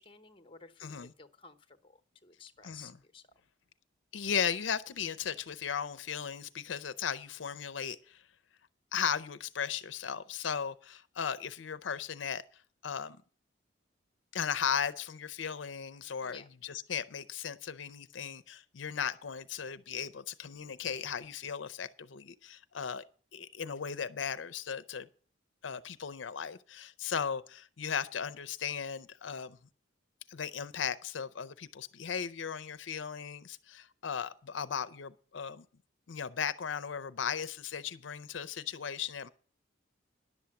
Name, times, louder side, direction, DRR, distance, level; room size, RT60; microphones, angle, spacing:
voice 1, 0.0-3.2 16.2-16.5, left 5 dB, 25° left, 0.9 m, -54 dB
voice 2, 0.8-1.1 2.6-3.0 4.1-8.2 8.9-12.4 12.8-13.2 14.3-23.0 23.3-25.1 25.6-29.6 30.3-35.6 36.1-39.3, left 7 dB, 75° left, 0.6 m, -36 dB
11.0 x 7.1 x 7.6 m
head